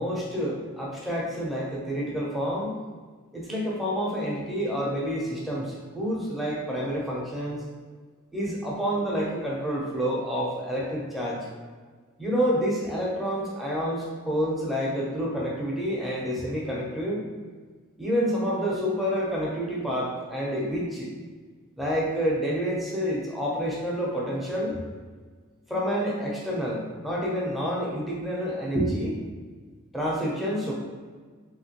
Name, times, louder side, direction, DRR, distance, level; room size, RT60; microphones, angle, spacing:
voice 1, 0.0-2.8 3.3-7.6 8.3-11.4 12.2-17.2 18.0-21.1 21.8-24.8 25.7-29.2 29.9-30.7, equal, ahead, -5 dB, 0.6 m, -28 dB
3.0 x 2.9 x 2.8 m, 1.5 s
head